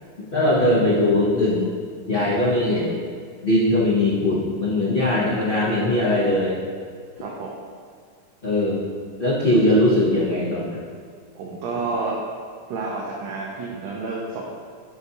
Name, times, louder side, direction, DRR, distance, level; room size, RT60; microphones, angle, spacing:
voice 1, 0.3-1.7 2.1-3.0 3.4-6.6 8.4-8.8 9.2-10.8, left 1 dB, 85° left, -6 dB, 0.4 m, -20 dB
voice 2, 7.2-7.5 11.3-12.2 12.7-14.4, right 3 dB, 80° right, -3 dB, 1.5 m, -29 dB
8.1 x 2.8 x 5.3 m, 2.1 s
omnidirectional pair, 2.2 m